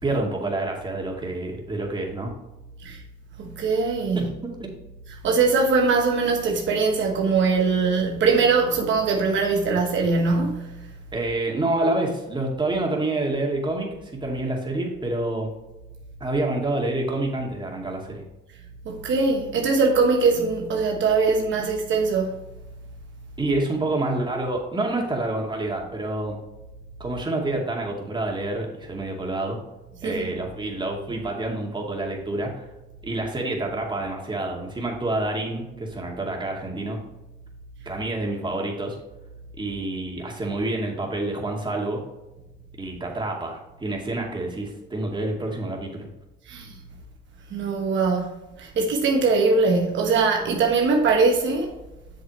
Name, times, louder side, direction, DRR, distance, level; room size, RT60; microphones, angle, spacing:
voice 1, 0.0-2.3 4.1-4.7 11.1-15.5 16.2-18.2 21.6-21.7 23.4-26.4 27.0-29.6 30.0-32.7 33.0-37.0 37.9-39.0 39.6-42.0 42.8-46.1, right 2 dB, 25° right, 2.5 m, -28 dB
voice 2, 3.4-4.3 5.1-10.7 18.8-22.3 30.0-30.4 46.5-46.7 47.5-51.7, right 4 dB, 70° right, 1.2 m, -22 dB
8.0 x 7.1 x 3.2 m
cardioid pair, 90°, 20 cm